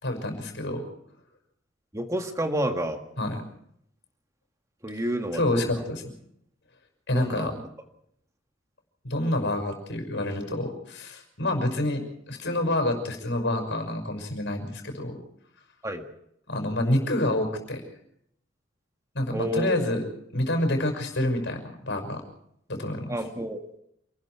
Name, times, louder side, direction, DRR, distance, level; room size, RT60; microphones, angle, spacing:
voice 1, 0.0-0.8 3.2-3.4 5.3-5.8 7.1-7.5 9.0-12.0 12.3-15.1 16.5-17.8 19.1-20.0 20.3-22.2 22.7-23.1, left 1 dB, 65° left, 5 dB, 6.0 m, -27 dB
voice 2, 1.9-3.0 4.8-5.8 7.1-7.7 15.8-16.0 19.3-20.0 23.1-23.8, equal, 15° right, 4 dB, 1.9 m, -30 dB
28.0 x 20.5 x 4.7 m, 0.73 s
head